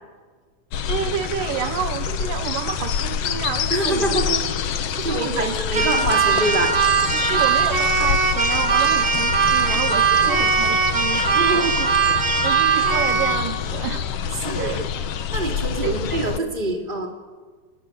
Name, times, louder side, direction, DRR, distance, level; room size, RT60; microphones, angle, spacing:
sound 1, 0.7-16.4, left 8 dB, 60° left, 1.7 m, -27 dB
voice 1, 0.9-4.2 4.9-5.6 7.3-11.9 12.4-14.1 14.6-14.9 15.8-16.0, right 10 dB, 80° right, 11 dB, 2.5 m, -29 dB
voice 2, 3.7-4.4 4.8-7.2 11.3-11.8 14.4-14.8 15.3-17.1, right 2 dB, 15° right, 2 dB, 3.3 m, -25 dB
Keyboard (musical), 5.7-13.5, right 5 dB, 30° right, 2.3 m, -20 dB
29.5 x 19.0 x 8.5 m, 1.4 s
omnidirectional pair, 3.9 m